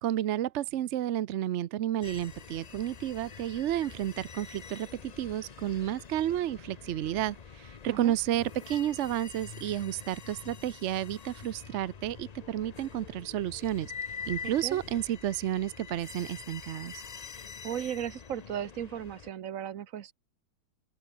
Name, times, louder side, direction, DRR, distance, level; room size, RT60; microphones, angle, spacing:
voice 1, 0.0-13.9 14.3-17.0, right 12 dB, 75° right, 0.6 m, -31 dB
sound 1, 2.0-19.3, left 6 dB, 85° left, 0.3 m, -45 dB
voice 2, 14.4-14.8 17.6-20.1, right 10 dB, 55° right, 1.1 m, -36 dB
open air
omnidirectional pair, 2.0 m